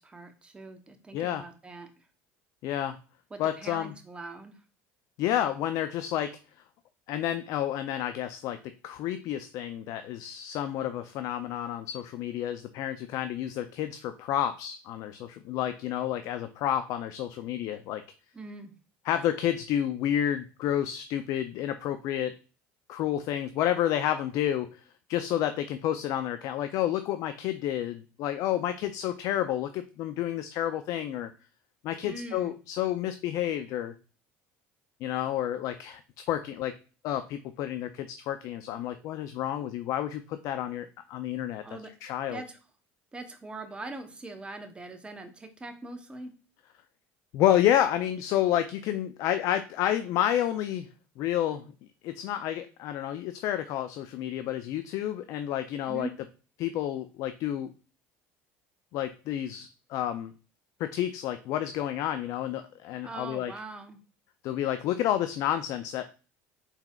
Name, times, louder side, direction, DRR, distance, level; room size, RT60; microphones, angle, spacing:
voice 1, 0.0-2.1 3.3-4.6 18.3-18.7 32.0-32.5 41.6-41.9 42.3-42.6 43.1-46.3 55.9-56.1 63.0-64.0, right 2 dB, 15° right, 6 dB, 0.8 m, -42 dB
voice 2, 1.1-1.5 2.6-3.0 3.4-3.9 5.2-6.4 7.1-8.6 8.8-18.0 19.0-22.4 22.9-24.8 25.1-31.3 31.8-33.9 35.0-36.8 37.0-41.6 42.0-42.4 47.3-50.9 51.2-51.7 52.0-56.1 56.6-57.7 58.9-60.3 60.8-63.5 64.4-66.0, left 11 dB, 60° left, 10 dB, 0.4 m, -30 dB
4.2 x 4.0 x 2.3 m, 0.35 s
supercardioid pair, 100°, 6 cm